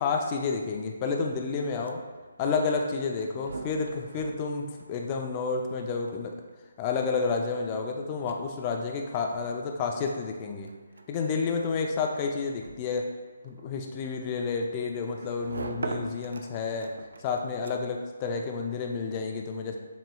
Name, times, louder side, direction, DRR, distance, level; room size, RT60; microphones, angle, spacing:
voice 1, 0.0-2.0 2.4-6.4 6.8-10.7 11.1-13.1 13.4-16.9 17.2-19.8, left 4 dB, 25° left, 2 dB, 0.4 m, -30 dB
sound 1, 1.6-18.1, right 3 dB, 85° right, 0.4 m, -44 dB
7.3 x 3.0 x 2.3 m, 1.4 s
hypercardioid pair, 160°, 0 cm